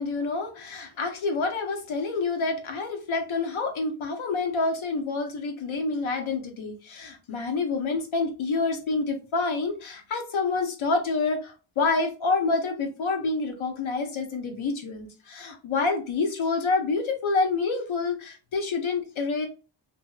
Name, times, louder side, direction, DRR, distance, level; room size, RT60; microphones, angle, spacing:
voice 1, 0.0-19.5, left 3 dB, 85° left, 4 dB, 0.8 m, -28 dB
2.6 x 2.6 x 2.3 m, 0.34 s
wide cardioid pair, 105°, 47 cm